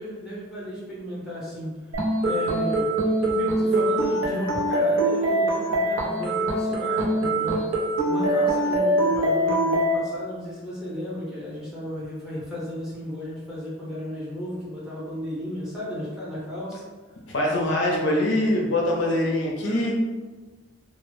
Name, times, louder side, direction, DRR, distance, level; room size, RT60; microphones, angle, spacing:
voice 1, 0.0-1.7 2.2-3.0 3.3-7.7 8.1-16.8 19.6-19.9, equal, 5° right, -8 dB, 0.7 m, -34 dB
sound 1, 1.9-9.9, right 1 dB, 80° right, 0.5 m, -23 dB
voice 2, 17.3-19.9, left 1 dB, 65° left, -1 dB, 0.4 m, -23 dB
2.0 x 2.0 x 3.0 m, 1.3 s
head